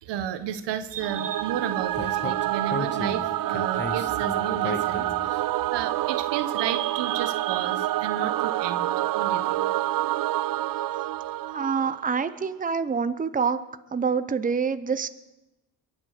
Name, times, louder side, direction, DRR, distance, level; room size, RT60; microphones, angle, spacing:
voice 1, 0.0-9.7, right 9 dB, 80° right, 10 dB, 1.3 m, -32 dB
Singing / Musical instrument, 1.0-12.3, right 14 dB, 55° right, 0.5 m, -27 dB
Speech, 2.0-5.4, left 3 dB, 25° left, 1.5 m, -34 dB
voice 2, 11.4-13.6 13.9-15.1, right 6 dB, 20° right, 12 dB, 0.8 m, -26 dB
22.5 x 8.0 x 6.7 m, 0.99 s
cardioid pair, 75°, 42 cm